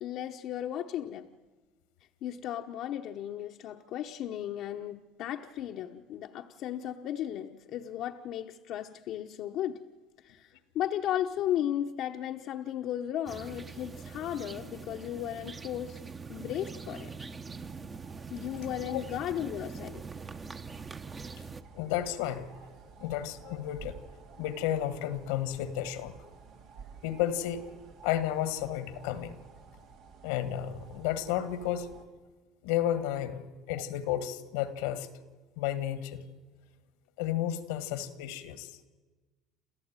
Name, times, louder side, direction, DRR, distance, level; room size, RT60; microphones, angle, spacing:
voice 1, 0.0-1.3 2.2-9.8 10.2-16.0 16.3-17.1 18.3-20.0, left 11 dB, 60° left, 3 dB, 1.0 m, -35 dB
sound 1, 13.3-21.6, right 5 dB, 25° right, 1.2 m, -43 dB
sound 2, 17.4-32.0, right 5 dB, 70° right, 2.3 m, -53 dB
voice 2, 21.7-22.5 23.0-23.9 24.4-26.1 27.0-27.6 28.0-29.3 30.2-31.9 32.6-35.1 35.6-36.2 37.2-38.7, left 11 dB, 85° left, 13 dB, 1.7 m, -32 dB
28.5 x 14.0 x 9.0 m, 1.3 s
supercardioid pair, 95°, 0 cm